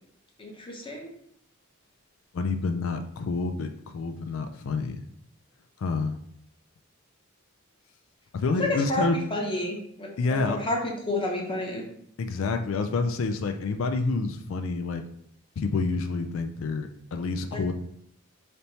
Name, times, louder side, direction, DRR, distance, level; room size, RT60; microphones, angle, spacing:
voice 1, 0.4-1.1 8.6-10.8 11.1-11.8 17.5-17.7, left 1 dB, 25° left, -1 dB, 0.8 m, -30 dB
voice 2, 2.3-5.0 5.8-6.2 8.3-9.2 10.2-10.6 12.2-15.0 15.6-17.7, left 3 dB, 65° left, 7 dB, 0.4 m, -28 dB
3.4 x 2.8 x 4.0 m, 0.70 s
head